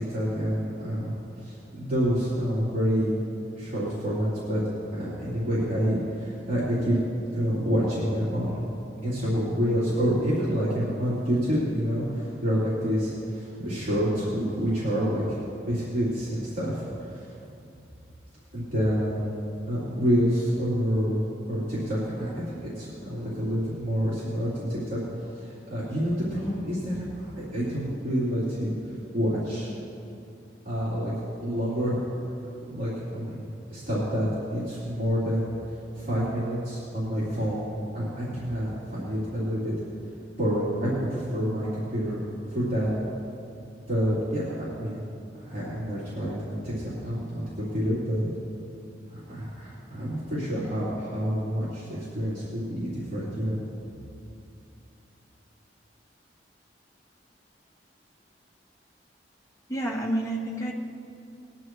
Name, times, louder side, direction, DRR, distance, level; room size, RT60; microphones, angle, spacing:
voice 1, 0.0-3.1 3.5-4.6 4.9-7.0 7.3-8.6 9.0-15.4 15.7-17.3 18.5-19.4 19.7-21.2 21.5-28.7 29.1-29.7 30.6-31.1 31.4-32.2 32.6-39.7 40.4-42.2 42.5-42.9 43.9-45.0 45.3-46.3 46.6-48.3 49.0-53.6, equal, 50° right, -11 dB, 3.4 m, -28 dB
voice 2, 59.7-60.7, right 1 dB, 15° left, -3 dB, 1.6 m, -29 dB
21.5 x 10.5 x 3.2 m, 2.7 s
head